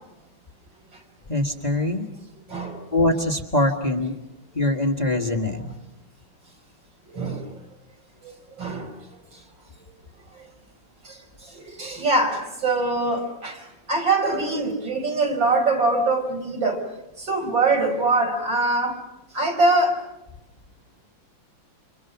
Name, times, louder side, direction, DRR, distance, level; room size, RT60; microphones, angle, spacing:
voice 1, 1.3-2.1 2.9-4.1 4.6-5.6, left 1 dB, 20° left, 2 dB, 1.8 m, -23 dB
voice 2, 8.6-8.9 11.1-11.2 11.5-13.6 13.9-16.8 17.2-19.0 19.3-20.0, right 2 dB, 75° right, 2 dB, 5.8 m, -23 dB
29.5 x 27.0 x 6.0 m, 0.94 s
omnidirectional pair, 2.0 m